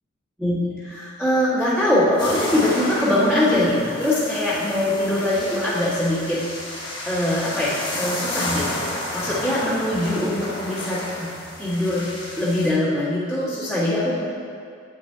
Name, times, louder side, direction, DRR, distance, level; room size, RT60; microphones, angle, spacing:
voice 1, 0.4-6.4 7.0-11.3 11.6-12.1 12.4-14.2, left 1 dB, 5° right, -14 dB, 1.7 m, -22 dB
sound 1, 2.2-12.7, left 1 dB, 25° left, 1.7 m, -31 dB
9.1 x 8.7 x 2.8 m, 2.3 s
head